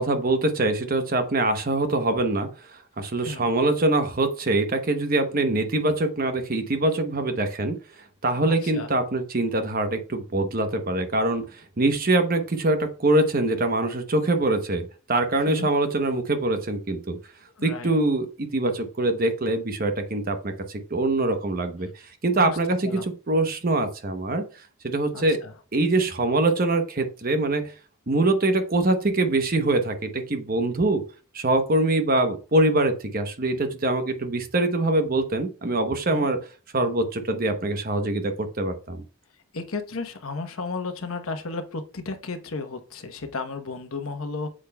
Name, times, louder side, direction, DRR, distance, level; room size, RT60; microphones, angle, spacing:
voice 1, 0.0-7.8 8.2-17.2 17.6-23.0 23.3-24.4 24.8-25.4 25.7-27.7 28.1-31.0 31.3-36.4 36.7-39.0, right 2 dB, 40° right, 7 dB, 0.9 m, -24 dB
voice 2, 8.5-8.9 15.5-15.7 17.6-17.9 22.4-22.6 22.8-23.1 25.1-25.5 36.1-36.3 39.5-44.5, left 3 dB, 75° left, 7 dB, 1.0 m, -33 dB
8.3 x 7.5 x 2.3 m, 0.35 s
head